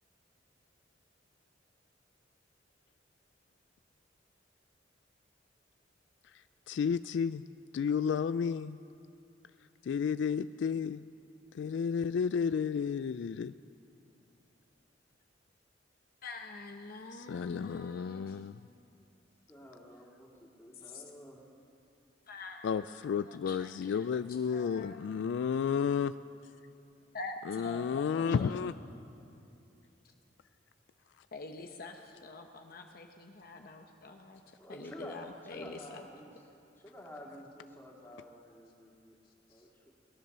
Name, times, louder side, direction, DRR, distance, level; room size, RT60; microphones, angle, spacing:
voice 1, 6.2-7.4 7.7-8.8 9.8-11.0 11.5-13.5 17.1-18.6 22.6-26.1 27.5-28.7, left 6 dB, 70° left, 14 dB, 0.3 m, -32 dB
voice 2, 16.2-18.4 20.7-21.0 22.3-24.2 24.5-24.9 27.1-28.7 31.3-36.1 39.5-39.6, left 3 dB, 55° left, 4 dB, 0.9 m, -46 dB
voice 3, 19.5-21.5 28.1-28.6 34.6-36.3 36.8-39.2 39.5-39.7, left 1 dB, 15° left, -2 dB, 2.7 m, -50 dB
20.0 x 10.5 x 6.8 m, 2.6 s
head